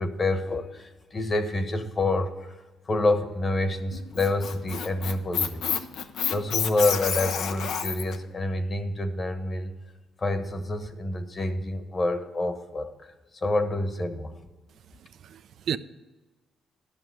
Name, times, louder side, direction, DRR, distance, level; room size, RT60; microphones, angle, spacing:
voice 1, 0.0-9.7 10.2-12.9 13.3-14.3, left 2 dB, 35° left, 8 dB, 1.3 m, -28 dB
Squeak, 3.9-8.2, left 8 dB, 75° left, 0.7 m, -29 dB
voice 2, 14.7-15.8, right 9 dB, 65° right, 14 dB, 0.5 m, -34 dB
12.0 x 6.2 x 8.0 m, 1.2 s
cardioid pair, 90°, 0 cm